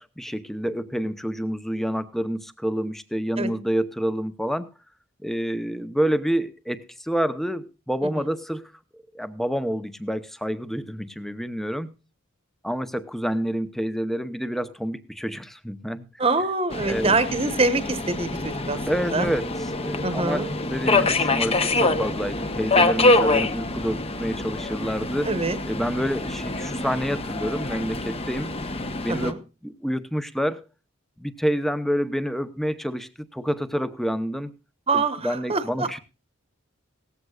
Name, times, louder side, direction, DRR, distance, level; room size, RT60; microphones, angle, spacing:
voice 1, 0.0-4.7 5.2-8.7 9.1-11.9 12.6-16.1 16.9-17.1 18.9-25.3 25.6-28.5 29.0-29.4 29.6-30.6 31.2-34.5 34.9-36.0, equal, ahead, 12 dB, 0.7 m, -28 dB
voice 2, 16.2-18.8 19.1-19.3 20.0-20.5 25.2-25.6 29.1-29.4 34.9-35.9, right 3 dB, 25° right, 11 dB, 1.1 m, -25 dB
Subway metro underground, 16.7-29.3, left 2 dB, 25° left, 0.9 m, -25 dB
17.5 x 14.5 x 2.4 m, 0.30 s
head